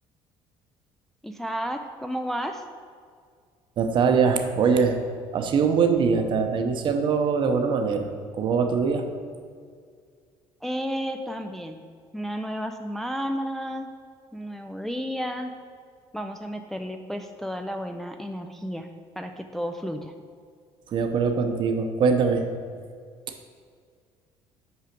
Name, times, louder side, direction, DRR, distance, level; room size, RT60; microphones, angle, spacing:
voice 1, 1.2-2.6 10.6-11.8 12.1-13.9 14.3-15.5 16.1-18.9 19.2-20.1, equal, 5° left, 5 dB, 0.3 m, -32 dB
voice 2, 3.8-5.0 5.3-9.1 20.9-22.5, right 5 dB, 50° right, 6 dB, 0.7 m, -22 dB
5.8 x 4.8 x 5.9 m, 2.1 s
cardioid pair, 130°, 11 cm